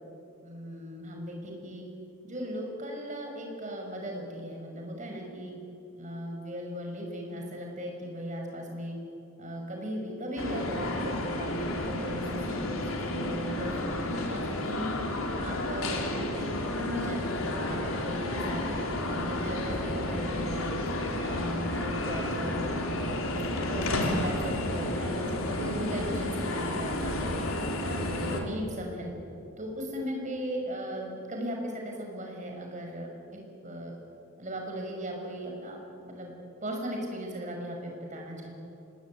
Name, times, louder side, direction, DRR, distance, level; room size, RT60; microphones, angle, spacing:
voice 1, 0.4-1.8 2.2-5.5 5.9-9.0 9.4-14.9 15.4-18.6 19.0-20.8 21.2-27.4 27.8-29.1 29.6-33.1 33.6-33.9 34.4-35.8 36.0-36.3 36.6-38.5, equal, 35° right, 1 dB, 5.8 m, -37 dB
sound 1, 10.4-28.4, left 1 dB, 80° left, 3.3 m, -31 dB
26.0 x 20.0 x 9.4 m, 2.8 s
head